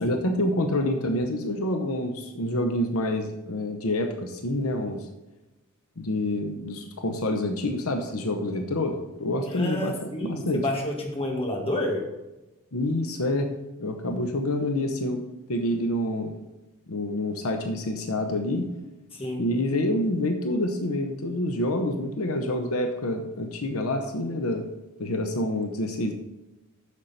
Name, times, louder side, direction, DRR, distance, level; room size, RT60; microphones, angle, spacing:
voice 1, 0.0-5.1 6.0-10.6 12.7-13.5 13.8-15.2 15.5-16.3 16.9-18.7 19.4-24.6 25.0-26.1, left 1 dB, 75° left, 4 dB, 0.9 m, -27 dB
voice 2, 9.4-12.1 19.1-19.4, left 1 dB, 25° left, 0 dB, 2.0 m, -30 dB
9.6 x 6.7 x 4.3 m, 1.0 s
head